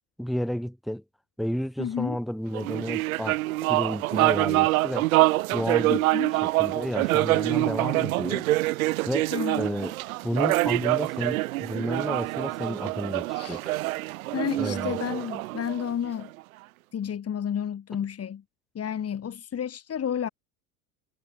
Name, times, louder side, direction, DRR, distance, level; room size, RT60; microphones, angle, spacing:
voice 1, 0.2-1.0 1.4-5.1 5.5-6.1 6.4-8.5 9.1-9.3 9.6-9.9 10.2-13.6 14.6-15.0, equal, ahead, 1.3 m, -31 dB
voice 2, 1.8-2.2 5.9-6.3 9.3-9.7 13.3-13.6 14.3-16.3 16.9-18.4 18.7-20.3, left 8 dB, 30° left, 5.8 m, -31 dB
sound 1, 2.5-16.2, right 19 dB, 65° right, 0.6 m, -25 dB
figure-of-eight pair, 75°, 45 cm